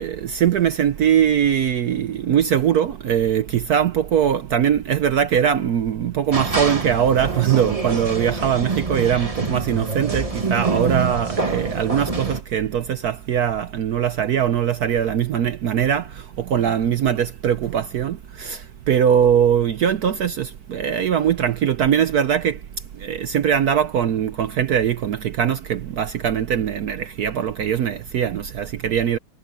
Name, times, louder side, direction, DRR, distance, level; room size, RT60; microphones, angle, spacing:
voice 1, 0.0-16.1 16.5-18.6 18.9-22.6 23.0-29.2, right 9 dB, 65° right, 0.9 m, -21 dB
sound 1, 6.3-12.4, right 3 dB, 20° right, 1.4 m, -26 dB
omnidirectional pair, 2.4 m